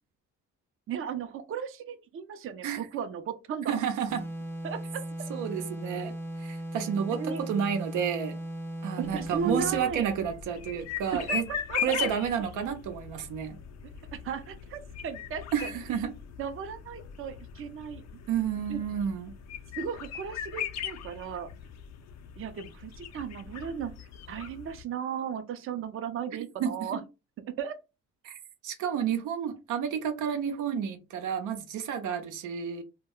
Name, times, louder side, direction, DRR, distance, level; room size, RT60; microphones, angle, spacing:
voice 1, 0.9-3.8 4.6-5.0 5.9-6.0 7.1-7.4 9.0-10.1 11.1-12.1 14.1-15.7 16.4-18.0 18.7-18.8 19.8-21.5 22.4-23.9 24.3-27.0 27.6-27.8, right 7 dB, 45° right, 0.5 m, -36 dB
voice 2, 3.7-4.2 5.3-6.1 6.4-8.4 8.8-11.5 11.8-13.6 15.5-16.1 18.3-19.3 26.6-27.0 28.2-28.4 28.6-32.8, right 8 dB, 90° right, 0.6 m, -31 dB
sound 1, 4.1-9.9, right 1 dB, 10° left, 0.4 m, -37 dB
sound 2, 9.0-24.8, left 9 dB, 60° left, 0.5 m, -39 dB
2.1 x 2.1 x 3.6 m
cardioid pair, 90°, 30 cm